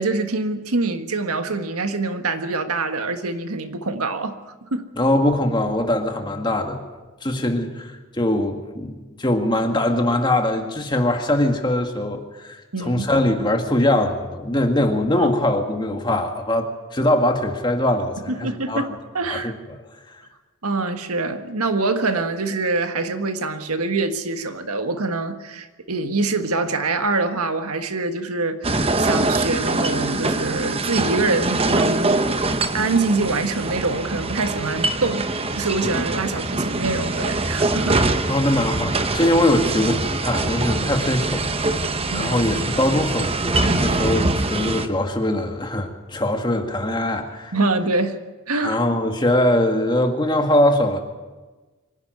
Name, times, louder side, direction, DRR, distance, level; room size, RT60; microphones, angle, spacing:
voice 1, 0.0-4.9 12.7-13.0 15.1-15.3 18.3-18.9 19.1-19.5 20.6-32.2 32.7-38.0 42.1-42.3 47.5-48.2 48.5-48.8, right 3 dB, 80° right, 8 dB, 1.5 m, -25 dB
voice 2, 5.0-6.8 7.2-18.9 19.2-19.8 20.1-20.2 38.3-41.5 41.8-47.6 48.6-51.0, left 1 dB, 20° left, 4 dB, 1.9 m, -22 dB
sound 1, 28.6-44.9, right 2 dB, 25° right, 1.0 m, -23 dB
24.5 x 11.5 x 9.4 m, 1.2 s
head